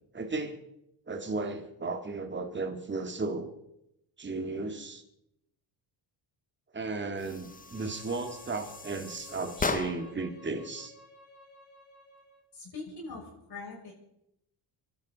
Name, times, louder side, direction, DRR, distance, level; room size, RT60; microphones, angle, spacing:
voice 1, 0.1-0.6 1.1-3.5 4.2-5.0 6.7-10.9, right 3 dB, 25° right, 5 dB, 2.0 m, -35 dB
sound 1, 7.2-10.3, left 4 dB, 15° left, 0.7 m, -37 dB
Bowed string instrument, 7.3-12.4, left 1 dB, 35° left, 7.1 m, -54 dB
voice 2, 12.5-13.9, left 3 dB, 50° left, -3 dB, 5.8 m, -42 dB
26.0 x 12.0 x 4.1 m, 0.82 s
cardioid pair, 115°, 48 cm